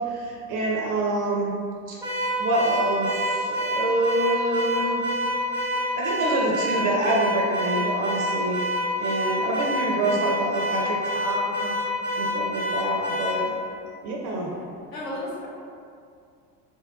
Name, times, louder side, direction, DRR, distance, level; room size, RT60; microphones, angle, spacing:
voice 1, 0.0-1.5 1.9-2.0 2.4-5.0 6.0-8.6 9.0-11.7 12.2-13.5 14.0-14.5, right 2 dB, 40° right, -2 dB, 0.5 m, -26 dB
Car / Alarm, 2.0-13.4, equal, 5° right, 0.7 m, -27 dB
voice 2, 14.2-14.7 14.9-15.5, left 1 dB, 45° left, -6 dB, 1.1 m, -35 dB
2.8 x 2.2 x 3.6 m, 2.4 s
hypercardioid pair, 80°, 49 cm